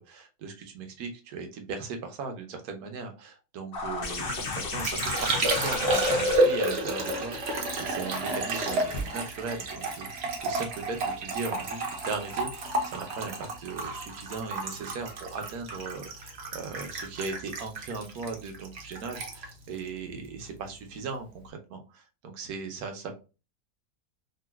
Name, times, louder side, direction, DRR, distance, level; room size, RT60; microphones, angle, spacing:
voice 1, 0.0-23.1, right 4 dB, 75° right, 4 dB, 1.2 m, -38 dB
sound 1, 3.7-9.0 10.4-10.5, left 3 dB, 55° left, 0.6 m, -35 dB
Liquid, 4.1-20.7 20.9-21.5, right 1 dB, 55° right, 0.8 m, -31 dB
3.8 x 2.5 x 2.2 m, 0.30 s
omnidirectional pair, 1.6 m